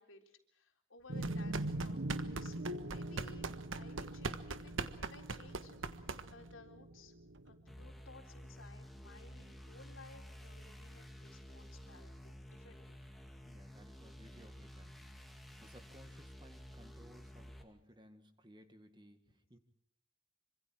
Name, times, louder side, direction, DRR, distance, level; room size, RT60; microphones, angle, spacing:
voice 1, 0.0-3.5 3.8-7.1 7.4-13.0, left 3 dB, 90° left, 3 dB, 3.9 m, -59 dB
sound 1, 1.1-7.7, right 1 dB, 70° right, 1.2 m, -43 dB
sound 2, 1.2-6.5, right 3 dB, 85° right, 1.4 m, -42 dB
sound 3, 7.7-17.6, equal, ahead, 2.3 m, -52 dB
voice 2, 13.4-19.6, equal, 20° right, 8 dB, 2.0 m, -60 dB
26.5 x 25.5 x 4.7 m, 0.67 s
head